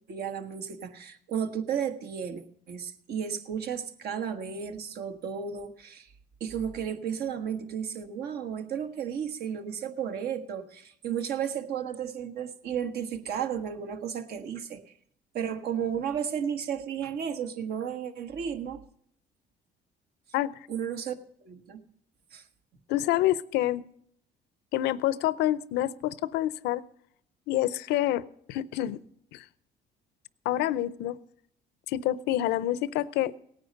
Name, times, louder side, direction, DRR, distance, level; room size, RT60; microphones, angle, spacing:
voice 1, 0.1-6.1 6.4-14.9 15.3-18.8 20.7-21.2 21.4-21.8 22.3-22.4, right 8 dB, 70° right, 8 dB, 1.5 m, -33 dB
voice 2, 22.9-23.8 24.7-26.8 27.5-29.0 29.3-29.4 30.4-31.2 31.9-33.3, left 13 dB, 85° left, 18 dB, 0.6 m, -27 dB
17.0 x 9.6 x 5.3 m, 0.69 s
cardioid pair, 110°, 17 cm